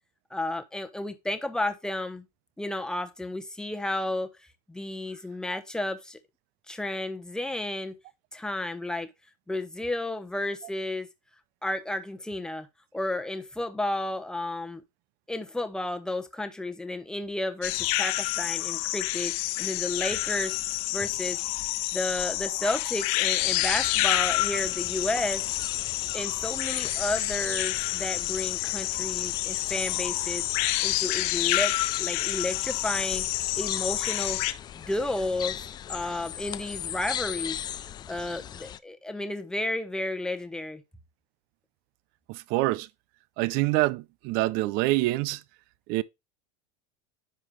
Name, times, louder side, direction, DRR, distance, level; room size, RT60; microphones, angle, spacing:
voice 1, 0.3-2.2 2.6-4.3 4.7-6.2 6.7-7.9 8.3-9.1 9.5-11.1 11.6-12.7 12.9-14.8 15.3-19.3 19.6-20.5 20.9-21.4 21.9-25.4 26.1-30.4 30.8-33.3 33.6-34.4 34.8-35.6 35.9-37.6 38.1-40.8, left 2 dB, 5° left, 1.0 m, -32 dB
sound 1, 17.6-34.5, left 17 dB, 60° left, 1.1 m, -29 dB
sound 2, 23.4-38.8, left 10 dB, 20° left, 0.4 m, -38 dB
voice 2, 42.3-42.9 43.4-45.4 45.9-46.0, right 19 dB, 50° right, 0.6 m, -26 dB
10.0 x 5.7 x 3.2 m
supercardioid pair, 150°, 21 cm